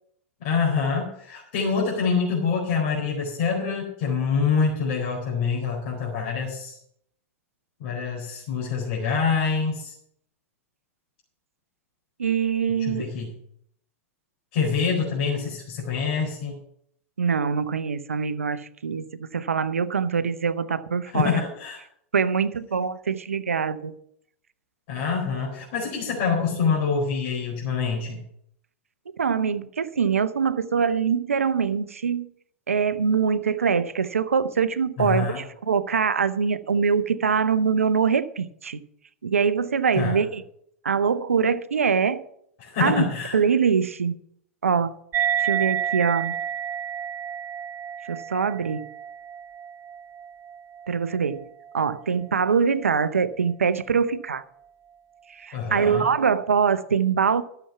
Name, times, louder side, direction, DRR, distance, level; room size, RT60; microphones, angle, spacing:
voice 1, 0.4-6.8 7.8-10.0 12.8-13.3 14.5-16.6 21.1-21.8 24.9-28.2 35.0-35.4 40.0-40.2 42.6-43.4 55.5-56.1, left 5 dB, 55° left, 4.3 m, -26 dB
voice 2, 12.2-13.1 17.2-21.4 22.1-23.9 29.2-32.3 32.7-38.8 39.2-40.4 40.8-42.2 42.8-43.0 43.3-44.1 44.6-44.9 45.4-46.3 48.1-48.8 50.9-51.5 51.7-54.4 55.3-57.4, right 6 dB, 85° right, 0.7 m, -23 dB
sound 1, 45.1-52.0, right 9 dB, 30° right, 0.5 m, -30 dB
13.0 x 7.0 x 5.8 m
hypercardioid pair, 100°, 7 cm